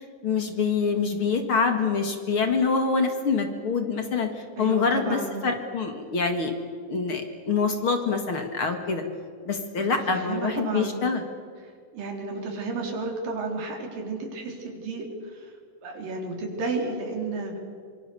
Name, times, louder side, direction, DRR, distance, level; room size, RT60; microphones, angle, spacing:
voice 1, 0.2-4.3 4.6-6.5 6.9-9.0 9.5-11.2, left 5 dB, 45° left, 6 dB, 2.4 m, -25 dB
voice 2, 4.6-5.5 9.8-11.1 11.9-15.1 15.3-15.5 15.8-17.6, right 3 dB, 80° right, 2 dB, 5.2 m, -32 dB
25.5 x 23.5 x 6.9 m, 2.2 s
omnidirectional pair, 3.9 m